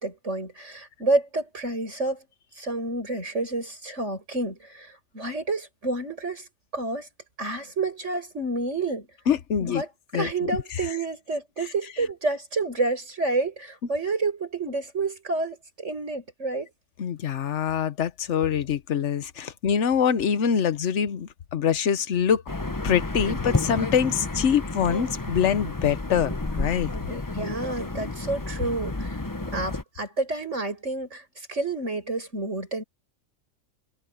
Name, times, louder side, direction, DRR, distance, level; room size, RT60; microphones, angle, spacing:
voice 1, 0.0-2.2 2.6-6.5 6.7-7.1 7.4-9.1 9.6-9.9 10.1-16.7 27.1-32.8, right 3 dB, 60° right, 7.3 m, -29 dB
voice 2, 9.3-9.8 10.1-10.5 17.0-22.4 22.8-26.9, left 8 dB, 60° left, 1.2 m, -24 dB
sound 1, 22.5-29.8, left 2 dB, 15° left, 0.9 m, -31 dB
omnidirectional pair, 1.4 m